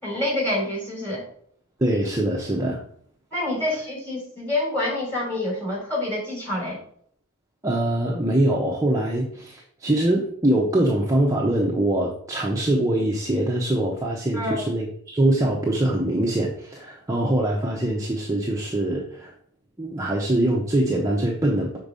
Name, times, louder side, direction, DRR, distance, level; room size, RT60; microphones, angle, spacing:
voice 1, 0.0-1.3 3.3-6.8 14.3-14.6, left 1 dB, 10° left, -5 dB, 3.7 m, -27 dB
voice 2, 1.8-2.8 7.6-19.3 19.8-21.8, right 1 dB, 15° right, -2 dB, 0.9 m, -23 dB
6.7 x 4.6 x 5.4 m, 0.62 s
head